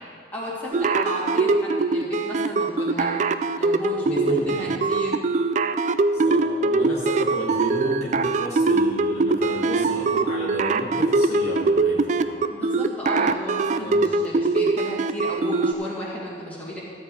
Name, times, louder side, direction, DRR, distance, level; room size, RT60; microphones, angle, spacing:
voice 1, 0.3-3.1 3.6-5.2 12.5-16.8, equal, 10° left, -7 dB, 2.5 m, -34 dB
sound 1, 0.7-15.7, right 3 dB, 40° right, 0.4 m, -22 dB
voice 2, 4.0-4.7 6.1-12.4 13.7-14.0, equal, 40° left, -6 dB, 1.6 m, -33 dB
13.5 x 4.5 x 8.3 m, 2.2 s
head